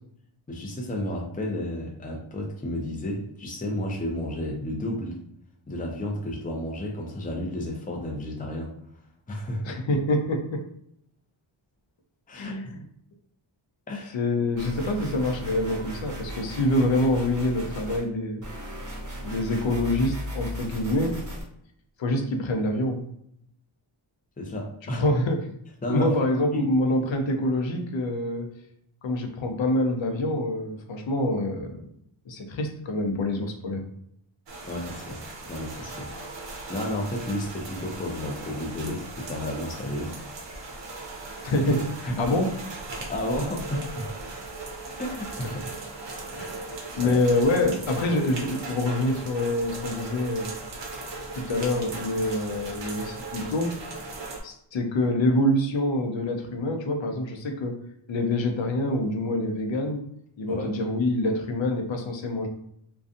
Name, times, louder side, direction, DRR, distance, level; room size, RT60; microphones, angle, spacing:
voice 1, 0.5-5.2 5.7-8.7 9.3-9.8 12.3-12.7 13.9-14.2 24.4-25.0 25.8-26.2 26.5-26.6 34.6-35.2 35.5-36.1 36.7-40.2 43.0-44.1 45.0-45.6 46.4-46.5 47.0-47.2 60.5-60.7, left 1 dB, 15° left, 0 dB, 0.5 m, -32 dB
voice 2, 9.6-10.7 12.3-12.7 14.1-18.4 19.2-21.2 22.0-23.1 24.9-25.5 25.9-28.5 29.0-31.8 32.3-33.8 41.4-42.5 46.3-46.5 46.9-50.5 51.3-53.7 54.4-57.8 58.1-60.0 60.4-62.5, left 1 dB, 65° left, 4 dB, 0.6 m, -26 dB
sound 1, 14.6-18.0 18.4-21.4, equal, 40° right, 1.0 m, -36 dB
sound 2, 34.5-54.4, right 3 dB, 60° right, 0.7 m, -38 dB
2.5 x 2.3 x 2.5 m, 0.72 s
wide cardioid pair, 80°, 50 cm